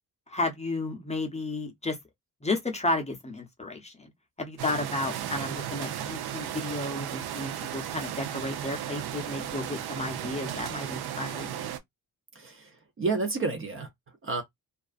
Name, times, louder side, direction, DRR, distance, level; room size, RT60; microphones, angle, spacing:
voice 1, 0.3-2.0 2.4-4.1 4.4-11.7, left 2 dB, 20° left, 0.6 m, -33 dB
sound 1, 4.6-11.8, right 10 dB, 90° right, 0.6 m, -35 dB
voice 2, 12.4-13.9 14.2-14.4, right 3 dB, 35° right, 0.5 m, -30 dB
2.4 x 2.2 x 2.3 m
wide cardioid pair, 135°, 37 cm